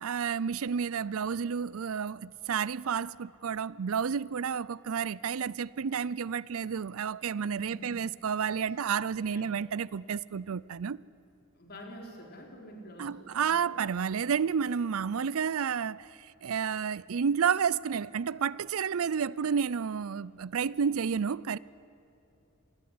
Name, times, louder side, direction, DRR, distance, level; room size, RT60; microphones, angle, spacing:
voice 1, 0.0-11.0 13.0-21.6, right 6 dB, 75° right, 0.5 m, -31 dB
voice 2, 11.6-13.7, equal, 45° left, 4.8 m, -48 dB
27.0 x 20.5 x 9.6 m
head